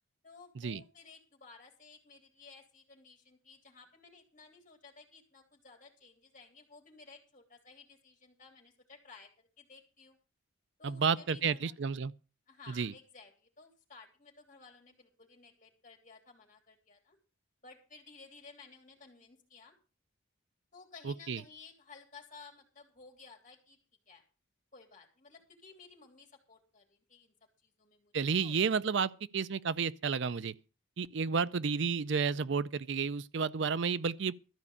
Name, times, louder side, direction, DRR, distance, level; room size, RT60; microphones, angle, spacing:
voice 1, 0.2-10.2 10.8-11.8 12.5-17.2 17.6-19.7 20.7-23.8 24.1-24.2 24.7-28.5 31.2-31.4, left 4 dB, 40° left, 3.2 m, -56 dB
voice 2, 10.8-12.1 12.7-12.9 21.0-21.4 28.1-30.5 31.0-34.3, right 5 dB, 60° right, 0.5 m, -31 dB
13.5 x 5.4 x 8.5 m
head